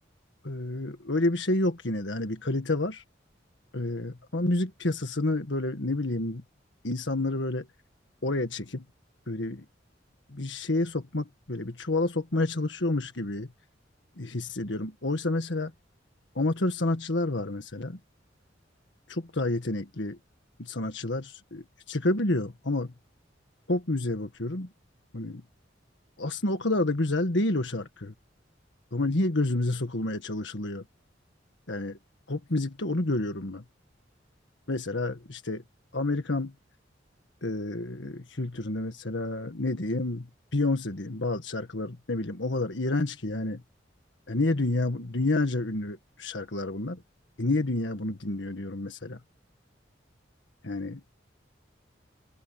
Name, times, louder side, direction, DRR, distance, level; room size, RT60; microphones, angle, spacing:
voice 1, 0.4-3.0 3.7-6.4 6.8-7.7 8.2-8.8 9.3-9.6 10.3-13.5 14.2-15.7 16.3-18.0 19.1-20.2 20.6-22.9 23.7-24.7 25.1-25.4 26.2-28.1 28.9-30.8 31.7-32.0 32.3-33.6 34.7-35.6 35.9-36.5 37.4-43.6 44.3-47.0 47.4-49.2 50.6-51.0, left 2 dB, 70° left, 1.7 m, -29 dB
head